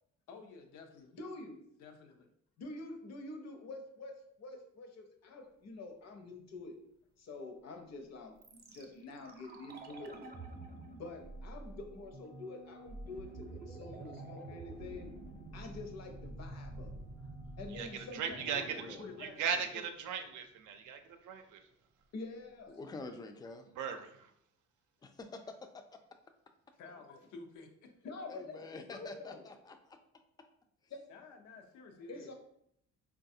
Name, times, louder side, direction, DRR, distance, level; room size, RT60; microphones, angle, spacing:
voice 1, 0.3-1.2 1.8-2.3 18.6-19.6 26.7-28.1 31.1-32.3, left 4 dB, 90° left, 4 dB, 0.6 m, -52 dB
voice 2, 1.1-1.6 2.6-6.8 7.2-10.1 10.9-15.1 15.5-17.0 17.6-18.6 19.0-19.5 19.7-19.8 22.1-22.8 28.0-28.6 28.9-29.5 30.9-31.1 32.1-32.3, left 2 dB, 60° left, 5 dB, 0.7 m, -47 dB
sound 1, 8.4-20.4 20.7-20.8, right 2 dB, 30° right, 0.6 m, -48 dB
voice 3, 17.7-18.6 18.9-21.6 23.8-24.3, right 7 dB, 80° right, 7 dB, 0.5 m, -38 dB
voice 4, 18.7-19.1 22.8-23.7 25.0-25.8 28.3-30.0, left 3 dB, 15° left, 6 dB, 0.3 m, -47 dB
4.0 x 2.3 x 2.6 m, 0.72 s
cardioid pair, 90°, 30 cm